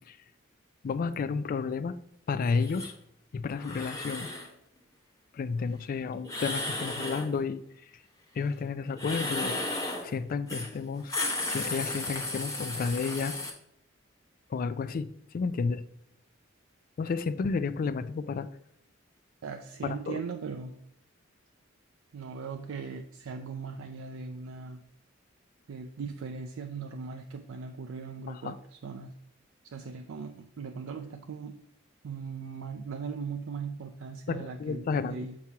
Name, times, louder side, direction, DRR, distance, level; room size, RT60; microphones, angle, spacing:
voice 1, 0.8-1.9 2.3-2.9 3.3-4.3 5.3-7.6 8.4-11.1 11.5-13.4 14.5-15.8 17.0-18.5 19.8-20.2 28.4-28.5 34.3-35.2, left 5 dB, 45° left, 13 dB, 0.3 m, -31 dB
sound 1, 2.6-2.9 3.6-4.5 6.2-7.3 8.9-10.1 10.5-10.7 11.0-13.5, left 2 dB, 15° left, 1.0 m, -34 dB
voice 2, 19.4-20.8 22.1-24.8 25.7-29.1 29.6-31.6 32.0-35.4, right 5 dB, 80° right, 5 dB, 0.4 m, -39 dB
7.1 x 4.6 x 2.8 m, 0.75 s
head